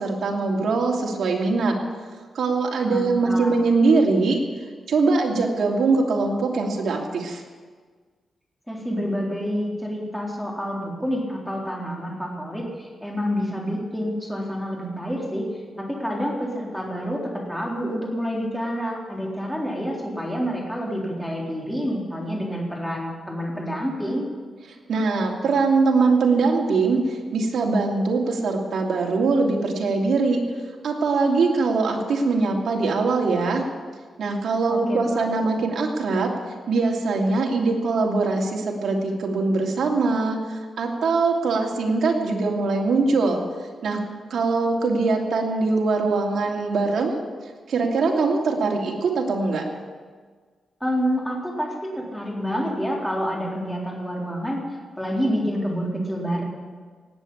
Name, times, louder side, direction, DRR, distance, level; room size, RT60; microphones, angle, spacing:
voice 1, 0.0-1.8 2.3-4.4 4.9-7.4 24.9-30.4 30.8-33.6 34.2-36.3 36.7-43.4 43.8-44.0 44.3-47.2 47.7-49.6, right 3 dB, 75° right, 0 dB, 2.7 m, -22 dB
voice 2, 2.8-3.6 8.7-15.5 15.8-24.3 34.7-35.2 50.8-54.6 55.0-56.4, equal, 5° left, -2 dB, 3.8 m, -28 dB
18.5 x 8.1 x 8.7 m, 1.5 s
cardioid pair, 110°, 0 cm